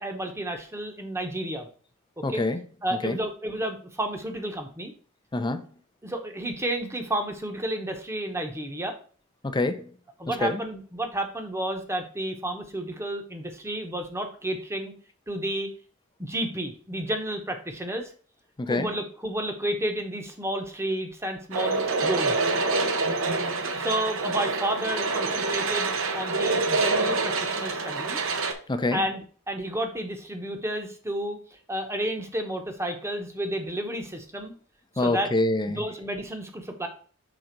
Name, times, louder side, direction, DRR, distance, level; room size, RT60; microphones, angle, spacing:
voice 1, 0.0-1.7 2.3-2.4 2.8-4.9 6.0-8.9 10.2-14.9 15.3-15.7 16.2-18.1 18.7-22.5 23.7-25.9 26.1-28.2 28.9-31.4 31.7-34.5 34.9-35.3 35.7-36.9, right 1 dB, 15° right, 1.0 m, -31 dB
voice 2, 2.2-2.6 3.0-3.2 5.3-5.7 9.4-9.9 10.4-10.6 18.6-18.9 28.7-29.0 35.0-35.8, left 2 dB, 20° left, 0.6 m, -25 dB
sound 1, 21.5-28.5, right 3 dB, 70° right, 0.9 m, -26 dB
6.0 x 3.8 x 5.2 m
head